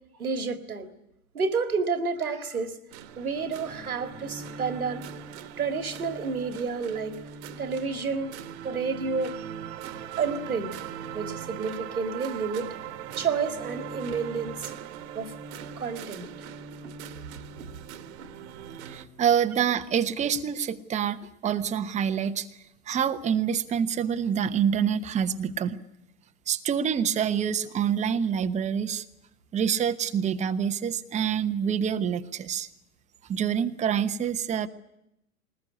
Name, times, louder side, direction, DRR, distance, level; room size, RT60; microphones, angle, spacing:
voice 1, 0.2-0.9 1.3-2.8 3.2-5.1 5.6-7.2 7.5-8.4 8.6-9.4 10.2-10.8 11.1-12.8 13.1-14.7 15.1-15.3 15.6-16.3 16.8-17.0 17.6-17.7 18.2-18.3, right 5 dB, 80° right, 2.1 m, -30 dB
sound 1, 2.9-19.1, right 7 dB, 50° right, 1.6 m, -40 dB
voice 2, 18.9-22.5 22.9-25.8 26.5-29.0 29.5-32.7 33.3-34.7, right 8 dB, 15° right, 1.0 m, -26 dB
21.5 x 19.5 x 9.8 m
figure-of-eight pair, 100°, 43 cm